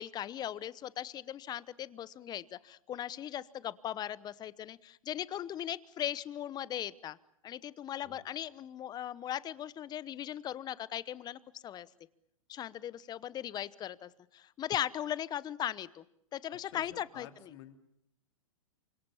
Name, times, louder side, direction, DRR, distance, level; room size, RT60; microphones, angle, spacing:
voice 1, 0.0-7.2 7.4-11.9 12.5-16.0 16.3-17.3, left 11 dB, 25° left, 19 dB, 0.9 m, -38 dB
voice 2, 16.6-17.8, left 10 dB, 55° left, 7 dB, 3.3 m, -52 dB
28.5 x 25.5 x 7.1 m, 0.78 s
hypercardioid pair, 115°, 17 cm